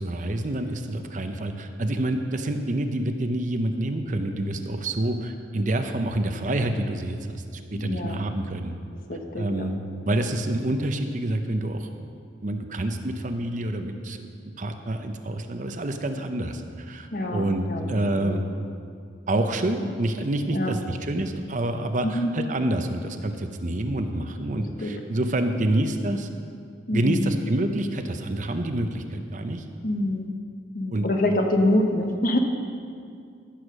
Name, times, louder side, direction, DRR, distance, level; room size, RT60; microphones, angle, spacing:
voice 1, 0.0-8.8 9.4-12.0 12.4-14.3 14.6-18.5 19.3-26.3 26.9-29.6 30.9-31.1, right 1 dB, 40° right, 7 dB, 0.7 m, -27 dB
voice 2, 7.7-8.2 9.1-9.7 17.1-18.4 19.7-19.9 20.5-20.7 22.0-22.3 24.6-24.9 26.9-27.3 29.8-30.3 30.7-32.4, left 1 dB, 50° left, 4 dB, 1.1 m, -26 dB
14.5 x 6.4 x 6.3 m, 2.3 s
head